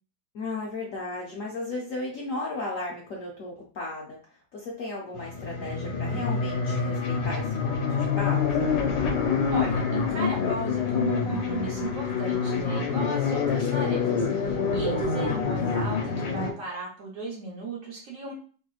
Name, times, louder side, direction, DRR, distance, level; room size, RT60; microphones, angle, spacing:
voice 1, 0.3-4.2 4.5-8.8, left 2 dB, 65° left, -2 dB, 0.8 m, -35 dB
sound 1, 5.2-16.5, left 5 dB, 90° left, 1.3 m, -26 dB
voice 2, 9.5-18.3, right 3 dB, 60° right, -3 dB, 0.9 m, -35 dB
3.2 x 2.9 x 2.3 m, 0.43 s
omnidirectional pair, 1.9 m